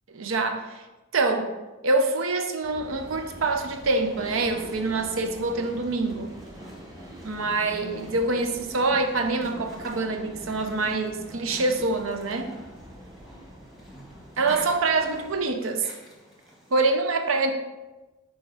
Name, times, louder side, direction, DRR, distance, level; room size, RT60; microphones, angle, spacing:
voice 1, 0.1-0.8 1.1-1.5 1.8-6.3 7.2-12.5 14.4-15.9 16.7-17.5, right 3 dB, 80° right, 5 dB, 0.7 m, -25 dB
sound 1, 2.6-15.4, equal, 20° right, 0.8 m, -46 dB
sound 2, 3.4-16.9, equal, ahead, 1.1 m, -46 dB
6.3 x 4.8 x 3.4 m, 1.1 s
head